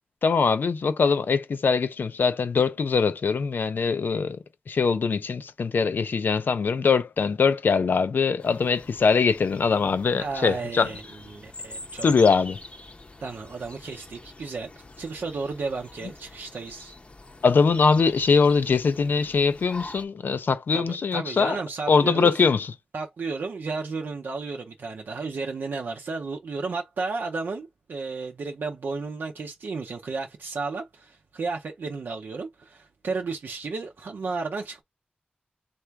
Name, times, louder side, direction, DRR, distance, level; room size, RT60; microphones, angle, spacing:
voice 1, 0.2-4.4 4.7-10.9 12.0-12.6 17.4-21.6 21.9-22.7, left 5 dB, 85° left, 0.6 m, -22 dB
sound 1, 8.4-20.0, left 2 dB, 40° left, 0.7 m, -44 dB
voice 2, 10.2-11.0 11.3-12.3 13.2-16.9 20.7-22.4 22.9-34.8, right 4 dB, 85° right, 0.6 m, -33 dB
3.4 x 2.5 x 4.5 m
wide cardioid pair, 110°, 3 cm